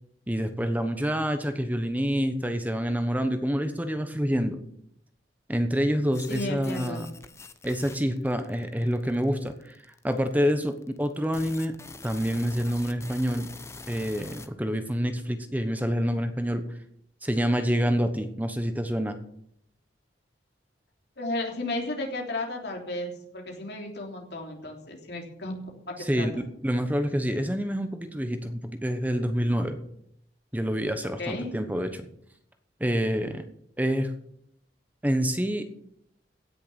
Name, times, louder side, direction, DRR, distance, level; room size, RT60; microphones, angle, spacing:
voice 1, 0.3-4.6 5.5-7.1 7.6-9.8 10.0-11.7 12.0-13.5 13.9-16.6 17.2-19.2 26.0-29.8 30.5-32.0 32.8-33.4 33.8-34.1 35.0-35.8, equal, 10° right, 8 dB, 1.0 m, -27 dB
sound 1, 6.1-14.5, left 3 dB, 15° left, 0.8 m, -45 dB
voice 2, 6.3-7.1 21.2-25.6 25.9-26.3 31.2-31.5, left 2 dB, 65° left, 1 dB, 3.3 m, -33 dB
16.5 x 6.8 x 7.0 m, 0.70 s
head